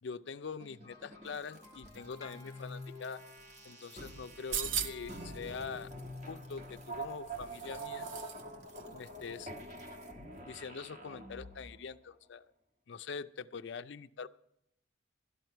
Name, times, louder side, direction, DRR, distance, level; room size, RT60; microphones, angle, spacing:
voice 1, 0.0-3.2 3.6-5.9 6.3-8.1 8.9-9.5 10.4-12.5 12.9-14.3, left 5 dB, 60° left, 12 dB, 0.5 m, -44 dB
sound 1, 0.6-11.9, right 1 dB, 35° right, 1.4 m, -46 dB
sound 2, 0.8-4.2, left 3 dB, 15° left, 0.7 m, -58 dB
sound 3, 4.3-5.2 6.7-8.4 8.7-8.8, right 8 dB, 70° right, 0.7 m, -39 dB
12.5 x 11.0 x 4.5 m, 0.77 s
head